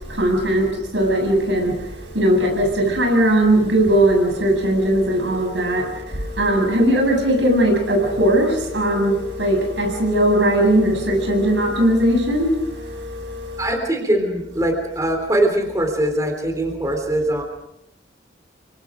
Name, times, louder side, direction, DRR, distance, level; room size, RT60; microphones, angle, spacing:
voice 1, 0.0-13.7, right 1 dB, 90° right, 7.5 m, -19 dB
voice 2, 13.6-17.4, right 1 dB, 20° right, 3.4 m, -21 dB
29.0 x 25.0 x 5.0 m
head